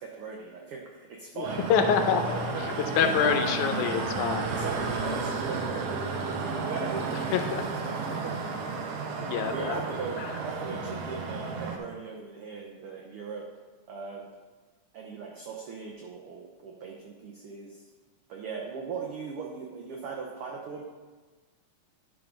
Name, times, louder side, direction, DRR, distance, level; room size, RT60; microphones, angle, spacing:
voice 1, 0.0-2.3 3.0-3.4 4.5-8.3 9.5-13.4 13.9-14.3 14.9-17.9 18.3-20.8, right 5 dB, 90° right, -1 dB, 1.2 m, -39 dB
voice 2, 1.3-4.5 4.8-5.2 7.3-7.6 9.2-9.8 10.2-10.4, left 7 dB, 80° left, 6 dB, 2.1 m, -27 dB
sound 1, 1.4-11.8, right 4 dB, 70° right, 1.5 m, -32 dB
10.5 x 3.8 x 5.1 m, 1.3 s
omnidirectional pair, 3.5 m